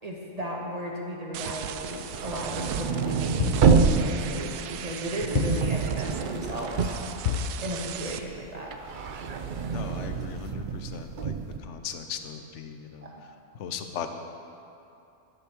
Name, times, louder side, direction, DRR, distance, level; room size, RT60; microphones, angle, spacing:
voice 1, 0.0-7.0 7.6-8.7 13.0-13.1, equal, 25° right, -2 dB, 1.5 m, -35 dB
sound 1, 1.3-8.2, right 9 dB, 90° right, 1.1 m, -38 dB
sound 2, 1.8-7.9 8.3-11.6, right 5 dB, 75° right, 0.4 m, -27 dB
sound 3, 3.4-3.8 5.3-5.8 7.2-7.6, left 8 dB, 80° left, 0.5 m, -29 dB
voice 2, 9.7-11.3 11.6-13.1 13.5-14.1, left 7 dB, 55° left, 7 dB, 1.0 m, -37 dB
12.0 x 8.3 x 6.1 m, 2.7 s
omnidirectional pair, 1.6 m